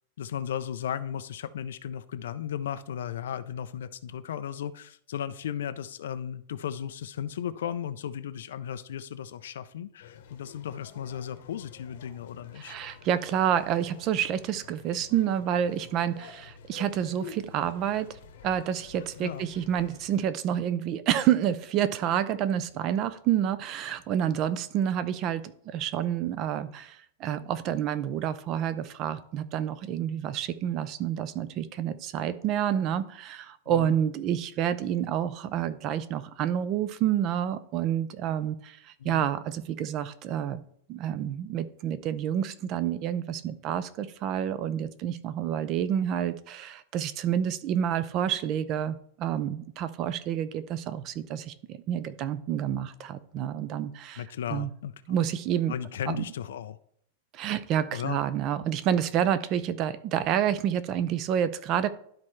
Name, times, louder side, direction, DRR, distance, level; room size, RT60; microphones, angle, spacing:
voice 1, 0.2-12.8 19.2-19.5 24.4-24.5 33.7-34.0 39.0-39.3 54.2-55.2 55.7-56.8 57.9-58.2, left 9 dB, 85° left, 12 dB, 0.4 m, -35 dB
sound 1, 10.0-20.3, left 7 dB, 65° left, 0.9 m, -49 dB
voice 2, 12.6-40.6 40.9-54.2 54.5-54.7 55.1-55.7 56.1-56.3 57.3-61.9, right 10 dB, 30° right, 14 dB, 0.4 m, -29 dB
12.0 x 4.3 x 3.2 m, 0.66 s
supercardioid pair, 175°, 0 cm